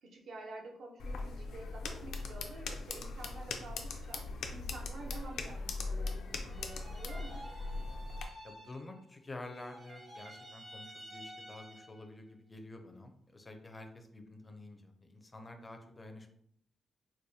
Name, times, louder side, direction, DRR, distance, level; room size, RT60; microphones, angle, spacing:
voice 1, 0.0-7.4, right 2 dB, 65° right, 2 dB, 0.7 m, -49 dB
sound 1, 1.0-8.2, left 3 dB, 85° left, 0.4 m, -40 dB
sound 2, 6.5-9.1 9.4-12.1, equal, 30° right, 0.7 m, -51 dB
voice 2, 8.4-16.3, left 2 dB, 20° left, 5 dB, 0.4 m, -49 dB
4.6 x 2.1 x 2.7 m, 0.71 s
wide cardioid pair, 145°, 0 cm